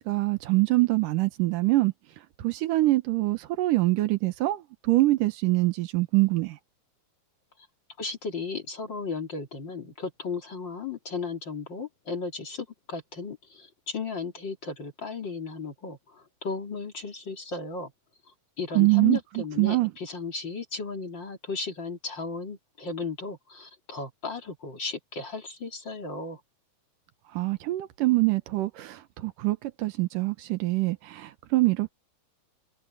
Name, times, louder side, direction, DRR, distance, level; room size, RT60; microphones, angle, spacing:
voice 1, 0.1-1.9 2.4-6.6 18.7-19.2 19.6-19.9 27.3-31.9, right 20 dB, 80° right, 2.5 m, -24 dB
voice 2, 8.0-17.9 18.6-26.4, left 4 dB, 35° left, 2.9 m, -35 dB
omnidirectional pair, 3.8 m